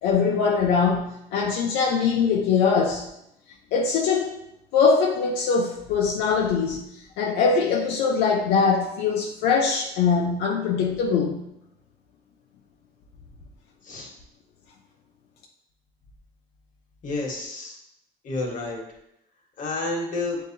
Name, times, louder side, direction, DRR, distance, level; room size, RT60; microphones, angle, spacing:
voice 1, 0.0-3.1 3.7-4.4 4.7-6.8 7.2-11.4, left 5 dB, 85° left, 0 dB, 0.5 m, -22 dB
voice 2, 17.0-17.8 18.2-18.8 19.6-20.4, left 2 dB, 50° left, -1 dB, 1.3 m, -30 dB
7.3 x 2.7 x 2.7 m, 0.80 s
cardioid pair, 110°, 17 cm